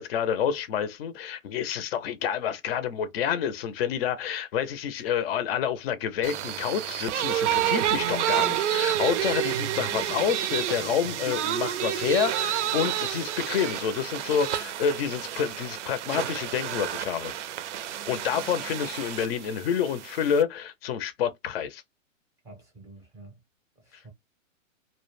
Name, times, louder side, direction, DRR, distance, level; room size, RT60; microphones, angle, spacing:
voice 1, 0.0-17.3 17.9-21.8, left 8 dB, 50° left, 0.5 m, -28 dB
sound 1, 6.2-20.4, right 12 dB, 65° right, 0.5 m, -29 dB
voice 2, 8.9-9.3 11.0-11.1 22.4-23.4 23.8-24.1, right 2 dB, 10° right, 0.6 m, -49 dB
2.1 x 2.1 x 3.1 m
hypercardioid pair, 140°, 40 cm